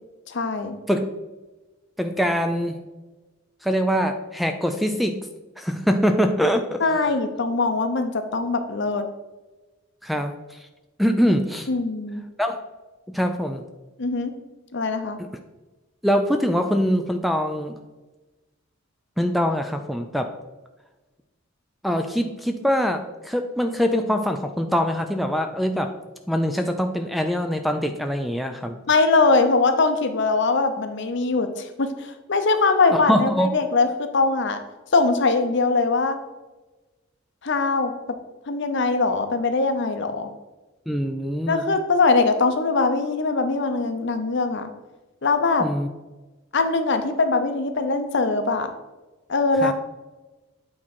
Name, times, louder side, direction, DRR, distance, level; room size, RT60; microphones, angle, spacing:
voice 1, 0.3-0.8 6.8-9.1 11.7-12.2 14.0-14.3 14.7-15.2 28.9-34.6 34.9-36.2 37.4-37.9 38.5-40.3 41.5-44.7 45.2-45.7 46.5-48.7 49.3-49.7, left 3 dB, 55° left, 8 dB, 0.7 m, -22 dB
voice 2, 2.0-2.8 3.6-5.2 5.6-7.1 10.0-10.7 11.0-11.7 12.4-12.6 13.1-13.6 15.2-15.3 16.0-17.8 19.2-20.3 21.8-25.9 26.3-28.8 32.9-33.5 40.9-41.6 45.6-45.9 49.6-49.7, equal, ahead, 6 dB, 0.3 m, -23 dB
8.6 x 4.3 x 4.3 m, 1.2 s
head